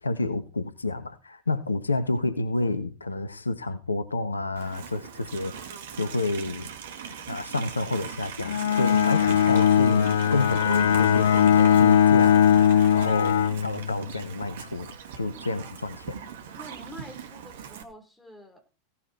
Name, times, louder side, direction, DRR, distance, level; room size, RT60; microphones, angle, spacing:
voice 1, 0.0-6.7 7.3-14.9 15.2-16.2, left 2 dB, 80° left, 1.2 m, -29 dB
Livestock farm animals working animals, 4.6-17.8, right 8 dB, 60° right, 2.0 m, -40 dB
Bowed string instrument, 8.4-14.2, left 9 dB, 65° left, 0.6 m, -20 dB
voice 2, 16.2-18.6, equal, 5° left, 4.6 m, -47 dB
16.5 x 9.9 x 4.6 m
figure-of-eight pair, 90°, 0 cm